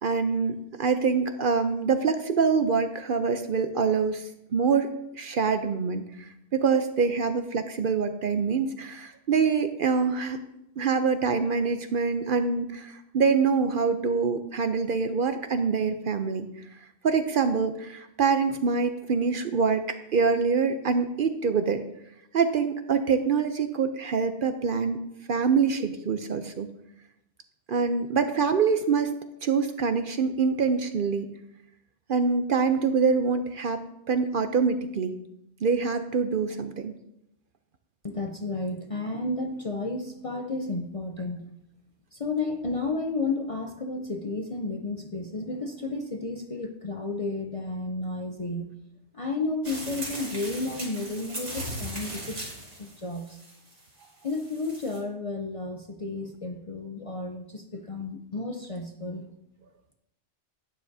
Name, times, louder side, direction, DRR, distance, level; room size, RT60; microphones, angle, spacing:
voice 1, 0.0-4.9 5.2-10.4 10.8-16.5 17.0-21.8 22.3-25.0 25.3-26.7 27.7-29.1 29.4-31.3 32.1-35.2 35.6-36.9, right 5 dB, 55° right, 9 dB, 0.7 m, -25 dB
voice 2, 38.0-41.5 42.1-48.7 49.1-52.5 52.8-53.4 54.2-59.3, left 3 dB, 40° left, 4 dB, 0.5 m, -32 dB
sound 1, 49.6-55.0, right 1 dB, 90° right, 3.2 m, -38 dB
11.5 x 9.5 x 2.7 m, 0.83 s
omnidirectional pair, 1.2 m